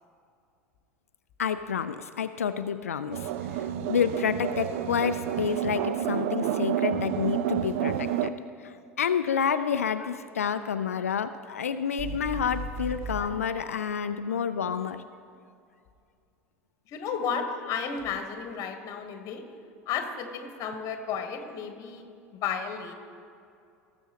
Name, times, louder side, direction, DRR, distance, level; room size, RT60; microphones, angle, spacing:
voice 1, 1.4-3.3 3.6-8.3 8.6-15.0, left 7 dB, 80° left, 11 dB, 0.4 m, -29 dB
sound 1, 3.1-8.3, right 10 dB, 60° right, 0.4 m, -29 dB
sound 2, 12.0-13.3, right 2 dB, 40° right, 1.5 m, -35 dB
voice 2, 16.9-19.5 19.9-22.0 22.3-22.9, left 6 dB, 45° left, 6 dB, 1.1 m, -33 dB
18.0 x 7.0 x 2.9 m, 2.4 s
figure-of-eight pair, 75°, 8 cm